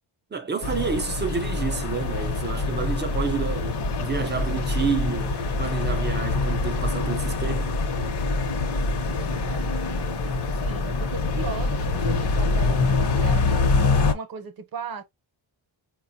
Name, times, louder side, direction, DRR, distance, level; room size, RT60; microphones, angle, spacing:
voice 1, 0.3-7.8, right 6 dB, 25° right, 0.4 m, -29 dB
sound 1, 0.6-14.1, left 3 dB, 55° left, 0.8 m, -25 dB
voice 2, 9.2-13.6 14.1-15.0, right 5 dB, 45° right, 0.8 m, -38 dB
4.8 x 2.3 x 2.5 m
wide cardioid pair, 170°, 49 cm